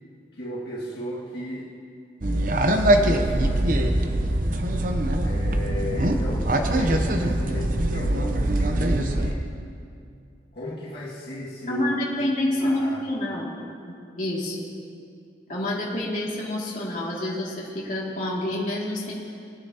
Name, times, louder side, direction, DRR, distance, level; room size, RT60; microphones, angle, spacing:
voice 1, 0.4-1.7 2.7-4.2 5.2-9.6 10.5-11.9 12.6-13.1, left 1 dB, 60° left, -8 dB, 2.0 m, -35 dB
sound 1, 2.2-9.3, right 1 dB, 50° right, 0.7 m, -22 dB
voice 2, 11.7-13.5 13.9-14.7 15.5-19.1, left 1 dB, 45° left, -6 dB, 2.4 m, -28 dB
21.5 x 9.7 x 2.9 m, 2.4 s
head